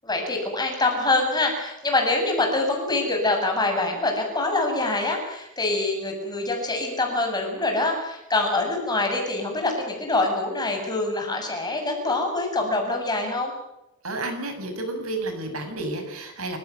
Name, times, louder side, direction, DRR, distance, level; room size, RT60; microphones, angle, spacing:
voice 1, 0.0-13.5, left 2 dB, 20° left, 2 dB, 7.7 m, -25 dB
voice 2, 14.0-16.6, right 2 dB, 75° right, 6 dB, 7.1 m, -31 dB
29.5 x 17.0 x 9.5 m, 0.91 s
head